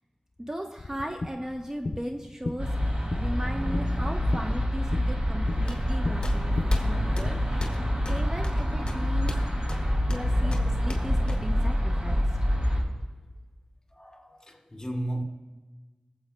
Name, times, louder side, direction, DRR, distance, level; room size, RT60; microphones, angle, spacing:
voice 1, 0.4-2.7 3.1-7.7 8.1-9.3 10.1-12.4, equal, 25° right, 0.9 m, -37 dB
sound 1, 0.8-7.3, left 2 dB, 70° left, 0.5 m, -36 dB
sound 2, 2.6-12.8, equal, 60° right, 2.4 m, -27 dB
voice 2, 3.2-3.5 6.7-7.2 8.0-8.4 9.6-10.3 12.3-12.5 12.8-12.9 13.9-15.2, right 1 dB, 25° left, 1.9 m, -39 dB
sound 3, 5.5-11.7, left 2 dB, 45° left, 1.6 m, -36 dB
22.0 x 7.8 x 2.2 m
wide cardioid pair, 40°, 2 cm